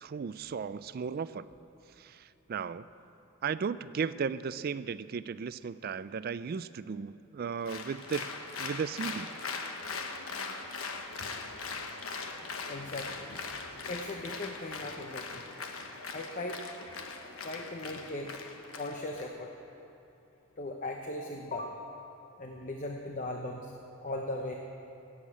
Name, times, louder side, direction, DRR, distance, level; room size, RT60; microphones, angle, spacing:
voice 1, 0.0-1.5 2.0-2.9 3.4-8.3 8.6-9.3, right 6 dB, 45° right, 15 dB, 0.3 m, -35 dB
Applause, 7.6-19.3, left 4 dB, 75° left, 1.1 m, -40 dB
voice 2, 12.7-13.3 13.9-15.4 16.1-16.6 17.4-18.3 18.7-19.5 20.6-21.8 22.4-23.7 24.0-24.5, left 2 dB, 35° left, 2 dB, 0.8 m, -38 dB
16.0 x 7.4 x 8.7 m, 2.8 s
head